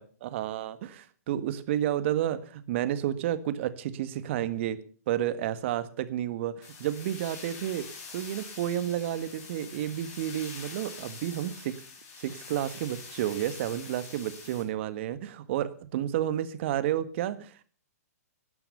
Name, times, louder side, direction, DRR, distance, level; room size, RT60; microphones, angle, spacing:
voice 1, 0.0-4.8 5.1-7.9 8.1-11.8 12.2-17.6, right 11 dB, 50° right, 13 dB, 1.5 m, -31 dB
sound 1, 6.6-14.6, left 5 dB, 35° left, 5.9 m, -45 dB
12.5 x 11.5 x 6.7 m, 0.42 s
hypercardioid pair, 125°, 9 cm